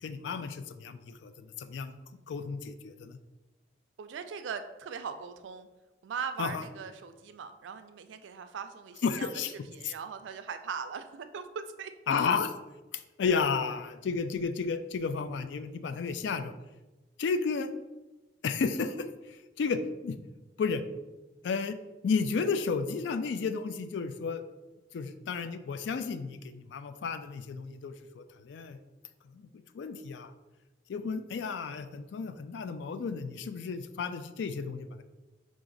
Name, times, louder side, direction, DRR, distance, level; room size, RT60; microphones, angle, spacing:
voice 1, 0.0-2.0 2.3-3.2 6.4-6.6 9.0-9.5 9.8-9.9 12.1-12.5 12.9-16.5 17.2-17.7 18.4-20.2 20.6-20.8 21.4-21.8 22.0-24.4 24.9-28.8 29.3-30.3 30.9-35.0, left 5 dB, 75° left, 10 dB, 0.3 m, -32 dB
voice 2, 4.0-5.7 6.0-9.3 9.7-11.9 12.2-12.3, right 6 dB, 85° right, 9 dB, 0.4 m, -40 dB
4.8 x 2.5 x 3.8 m, 1.1 s
head